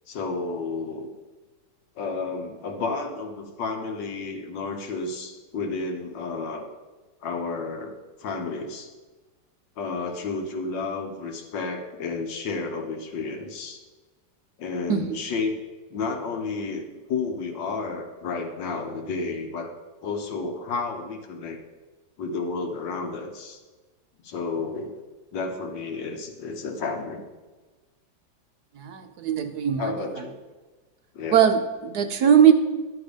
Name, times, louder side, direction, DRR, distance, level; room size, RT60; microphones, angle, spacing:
voice 1, 0.1-1.1 2.0-6.7 7.2-8.9 9.8-13.8 14.6-15.6 15.9-19.7 20.0-21.6 22.2-23.6 24.2-25.0 25.3-27.3 29.8-30.4 31.2-31.4, left 4 dB, 75° left, 4 dB, 1.8 m, -31 dB
voice 2, 28.8-30.1 31.3-32.5, right 8 dB, 65° right, 7 dB, 1.1 m, -20 dB
11.0 x 6.7 x 5.1 m, 1.3 s
omnidirectional pair, 2.0 m